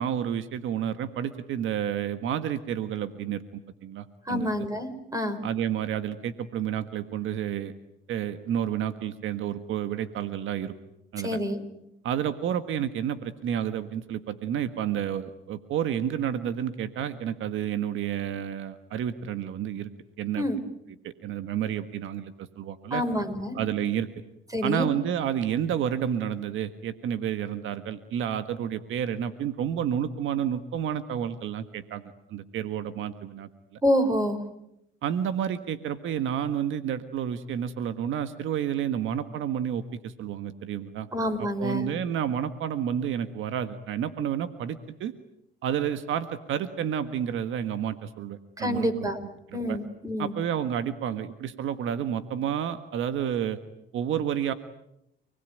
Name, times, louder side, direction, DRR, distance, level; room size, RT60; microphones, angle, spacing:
voice 1, 0.0-4.5 5.4-7.7 8.1-10.7 11.1-11.4 12.0-19.9 20.2-20.5 21.0-23.0 23.5-24.1 24.6-32.0 32.3-33.8 35.0-41.1 41.4-45.1 45.6-49.1 49.5-49.8 50.2-53.6 53.9-54.5, right 9 dB, 80° right, 10 dB, 1.6 m, -30 dB
voice 2, 4.2-5.4 11.2-11.6 20.3-20.6 22.9-23.6 24.5-24.9 33.8-34.4 41.1-41.9 48.6-49.2 49.5-50.3, equal, 15° right, 9 dB, 4.9 m, -27 dB
30.0 x 20.5 x 9.3 m, 0.82 s
cardioid pair, 90°, 20 cm